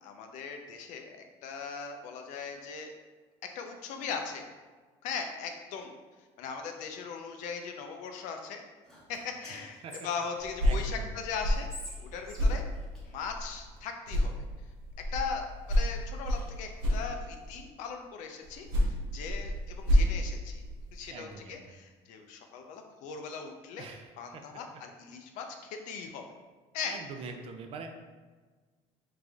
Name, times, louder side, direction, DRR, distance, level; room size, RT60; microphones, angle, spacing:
voice 1, 0.0-2.9 3.4-4.5 5.0-5.9 6.4-8.6 9.1-11.7 12.0-12.6 13.1-14.3 15.1-20.6 20.9-23.9 24.2-26.2 26.7-26.9, left 6 dB, 70° left, 4 dB, 0.6 m, -39 dB
Whispering, 8.8-10.8 11.4-13.6, left 1 dB, 5° left, 0.8 m, -49 dB
voice 2, 9.5-10.1 10.6-11.2 21.1-21.8 23.8-24.4 26.9-27.9, right 4 dB, 45° right, 5 dB, 0.5 m, -44 dB
sound 1, 10.4-13.8 14.1-17.6 18.4-21.1, equal, 90° right, 1.3 m, -30 dB
3.8 x 3.3 x 3.5 m, 1.4 s
cardioid pair, 145°, 14 cm